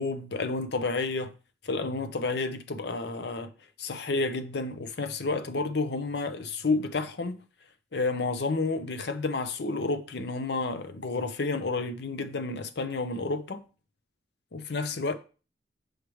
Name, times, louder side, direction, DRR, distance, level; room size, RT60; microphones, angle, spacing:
voice 1, 0.0-1.3 1.6-3.5 3.8-7.4 7.9-13.6 14.5-15.1, left 3 dB, 65° left, 0.7 m, -30 dB
6.5 x 4.8 x 3.1 m
head